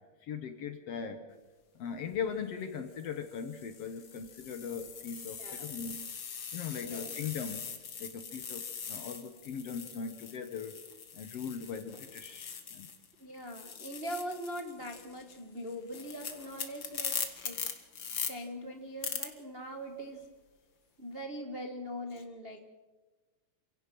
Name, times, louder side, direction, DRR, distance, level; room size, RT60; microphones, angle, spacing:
voice 1, 0.2-1.3 1.7-6.1 6.5-7.7 8.0-10.7 11.1-12.9, left 6 dB, 65° left, 8 dB, 1.6 m, -39 dB
sound 1, 2.0-2.2 3.0-13.1 13.4-18.3 19.0-19.3, left 7 dB, 45° left, 1.9 m, -41 dB
voice 2, 5.4-5.7 6.8-7.2 13.2-17.6 18.3-20.3 21.0-22.6, equal, 50° right, 4 dB, 0.6 m, -41 dB
29.0 x 17.0 x 6.0 m, 1.2 s
omnidirectional pair, 3.9 m